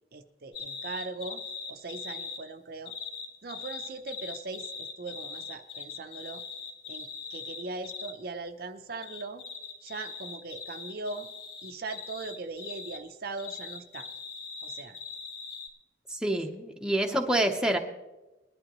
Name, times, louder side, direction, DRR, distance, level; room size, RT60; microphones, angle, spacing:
voice 1, 0.1-1.4 1.7-3.0 3.4-6.4 6.9-9.4 9.8-11.3 11.6-14.1 14.6-15.0, right 3 dB, 55° right, 7 dB, 0.7 m, -40 dB
sound 1, 0.5-2.4 2.9-8.1 9.0-13.0 13.4-15.7, left 5 dB, 75° left, 2.3 m, -41 dB
voice 2, 16.1-17.8, right 1 dB, 5° right, 3 dB, 0.9 m, -27 dB
20.0 x 11.5 x 3.0 m, 1.1 s
head